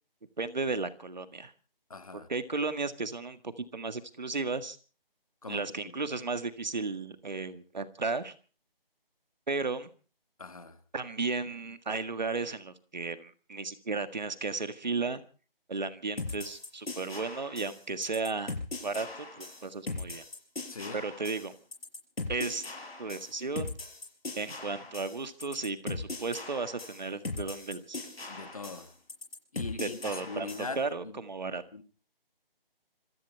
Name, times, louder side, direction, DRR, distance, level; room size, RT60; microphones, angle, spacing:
voice 1, 0.4-1.5 2.1-4.8 5.5-8.3 9.5-9.9 10.9-15.2 15.7-18.5 18.8-20.2 20.9-21.5 22.3-22.6 23.0-23.7 24.4-28.0 29.8-31.6, right 4 dB, 50° right, 1.7 m, -34 dB
voice 2, 1.9-2.3 5.4-5.9 10.4-10.8 20.7-21.0 28.3-28.9 29.5-31.2 31.7-31.8, left 3 dB, 35° left, 1.7 m, -41 dB
sound 1, 16.2-30.8, left 3 dB, 85° left, 5.9 m, -40 dB
26.5 x 12.0 x 4.6 m
figure-of-eight pair, 175°, 30 cm